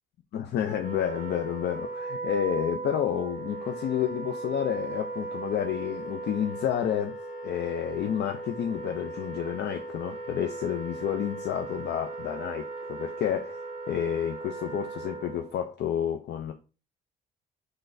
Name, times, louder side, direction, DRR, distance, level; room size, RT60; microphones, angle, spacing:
voice 1, 0.3-7.2 7.4-16.5, left 9 dB, 60° left, 0.4 m, -30 dB
Wind instrument woodwind instrument, 0.7-15.5, right 3 dB, 80° left, 1.6 m, -38 dB
3.8 x 3.2 x 2.5 m
cardioid pair, 90°, 20 cm